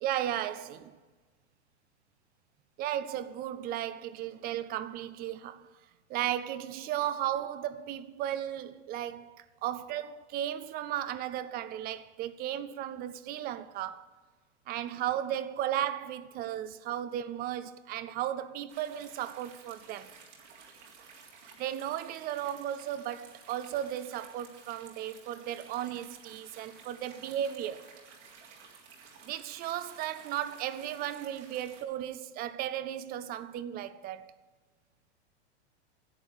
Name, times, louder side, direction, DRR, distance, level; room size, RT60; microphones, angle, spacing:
voice 1, 0.0-1.0 2.8-5.7 6.1-14.1 14.7-20.1 21.6-27.9 29.2-34.3, right 11 dB, 25° right, 0.5 m, -35 dB
sound 1, 18.7-31.8, right 5 dB, 80° right, 3.4 m, -54 dB
11.0 x 8.3 x 8.8 m
hypercardioid pair, 125°, 36 cm